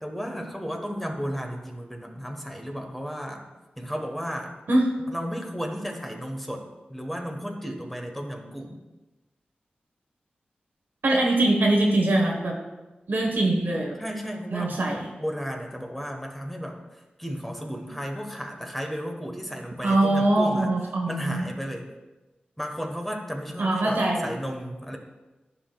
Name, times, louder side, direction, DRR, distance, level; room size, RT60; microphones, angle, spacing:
voice 1, 0.0-3.4 3.8-4.5 5.1-6.6 6.9-8.8 14.0-14.8 15.2-16.8 17.2-20.7 21.1-21.9 22.6-25.0, equal, 5° left, 2 dB, 1.4 m, -33 dB
voice 2, 11.0-12.5 13.1-13.9 14.5-15.0 19.8-21.5 23.6-24.3, right 2 dB, 75° right, -1 dB, 1.4 m, -22 dB
12.5 x 4.8 x 2.4 m, 1.1 s
cardioid pair, 45°, 3 cm